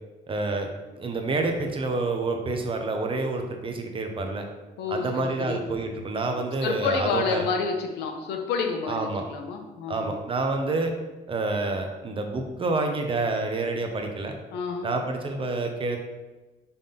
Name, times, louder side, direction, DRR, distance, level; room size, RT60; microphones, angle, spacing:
voice 1, 0.3-0.7 0.9-4.4 4.9-7.5 8.9-9.2 9.9-10.9 11.3-14.3 14.8-16.0, right 3 dB, 30° right, 4 dB, 1.0 m, -28 dB
voice 2, 4.8-5.6 6.6-10.1 14.5-14.9, left 5 dB, 80° left, 4 dB, 1.0 m, -29 dB
5.7 x 3.5 x 5.7 m, 1.2 s
cardioid pair, 110°, 17 cm